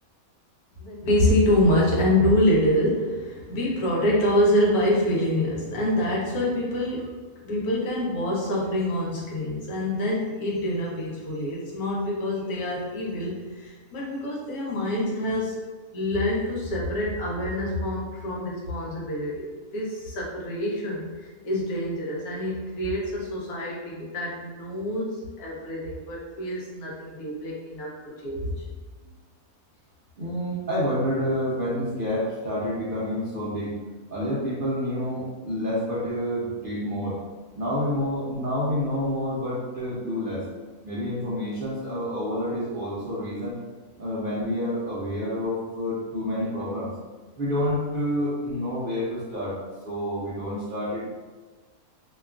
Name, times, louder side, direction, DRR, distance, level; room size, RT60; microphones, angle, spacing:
voice 1, 0.8-15.6 15.9-28.6, left 1 dB, 80° left, -3 dB, 1.2 m, -26 dB
voice 2, 30.2-33.8 34.1-37.2 37.6-40.4 40.8-43.6 44.0-46.9 47.4-49.5 49.8-51.0, equal, 65° right, -9 dB, 0.5 m, -28 dB
2.9 x 2.3 x 2.3 m, 1.3 s
omnidirectional pair, 1.6 m